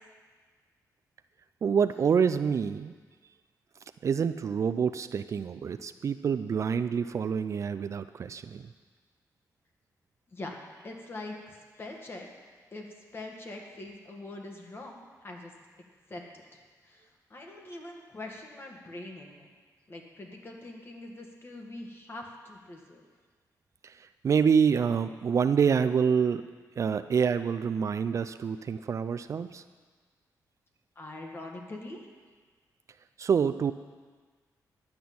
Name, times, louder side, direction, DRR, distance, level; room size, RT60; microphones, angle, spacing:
voice 1, 1.6-2.9 4.0-8.7 23.8-26.5 26.8-29.6 33.2-33.7, right 6 dB, 50° right, 11 dB, 0.4 m, -27 dB
voice 2, 10.8-12.3 12.7-15.5 16.1-16.2 16.5-19.5 19.9-23.0 31.0-32.1, left 2 dB, 35° left, 1 dB, 1.7 m, -43 dB
11.0 x 6.1 x 8.6 m, 1.5 s
cardioid pair, 115°, 7 cm